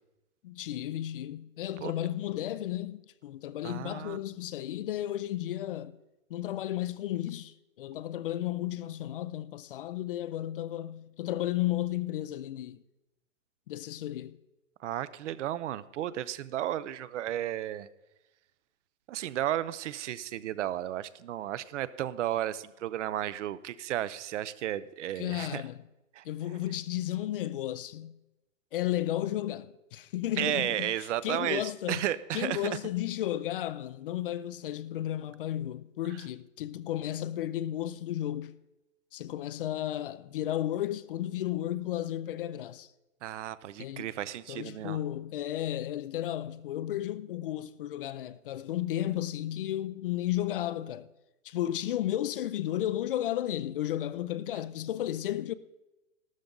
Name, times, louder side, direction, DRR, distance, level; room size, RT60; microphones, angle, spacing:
voice 1, 0.4-6.0 6.3-12.8 13.7-14.4 25.2-25.8 26.2-28.2 28.7-32.1 32.3-38.5 39.1-42.9 43.8-44.1 44.5-51.1 51.4-55.5, left 13 dB, 45° left, 0.5 m, -33 dB
voice 2, 3.6-4.2 14.8-17.9 19.1-25.6 26.2-26.3 30.4-31.6 31.9-32.8 43.2-45.0, right 12 dB, 60° right, 0.7 m, -33 dB
13.5 x 13.0 x 3.9 m
hypercardioid pair, 155°, 40 cm